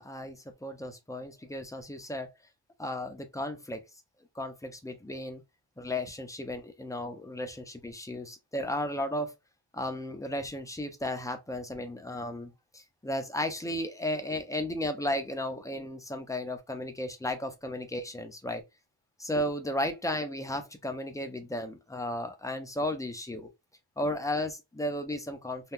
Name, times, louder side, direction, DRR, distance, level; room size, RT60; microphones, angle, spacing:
voice 1, 0.0-2.3 2.8-3.8 4.3-5.4 5.8-9.3 9.7-18.6 19.2-23.5 24.0-25.7, left 1 dB, 10° left, 0.6 m, -34 dB
2.8 x 2.3 x 3.6 m
wide cardioid pair, 95°, 43 cm